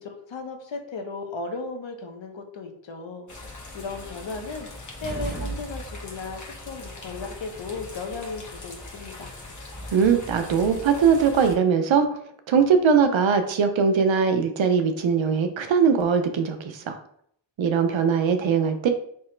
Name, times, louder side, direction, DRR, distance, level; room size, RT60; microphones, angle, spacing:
voice 1, 0.0-3.3 3.7-9.3, left 3 dB, 70° left, 4 dB, 0.9 m, -36 dB
sound 1, 3.3-11.5, left 2 dB, 40° left, 1.1 m, -41 dB
sound 2, 5.0-6.3, right 2 dB, 20° right, 1.5 m, -35 dB
voice 2, 9.9-12.1 12.5-16.9 17.6-18.9, right 6 dB, 75° right, 7 dB, 0.6 m, -21 dB
3.5 x 2.9 x 4.4 m, 0.66 s
wide cardioid pair, 85°, 47 cm